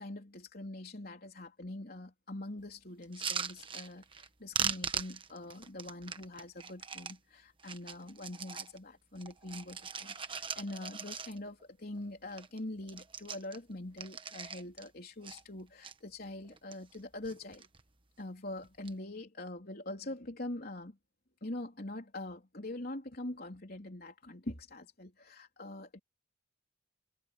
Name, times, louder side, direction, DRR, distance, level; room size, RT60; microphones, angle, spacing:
voice 1, 0.0-17.7 18.2-21.0 21.4-26.0, left 1 dB, 50° left, 3.9 m, -44 dB
sound 1, 3.0-4.3 4.5-7.2 7.6-8.8 9.1-11.6 12.0-12.1 12.3-12.6 12.8-14.9 15.2-15.9 16.5-17.0 17.2-17.8 18.6-18.9, right 6 dB, 25° right, 1.3 m, -40 dB
head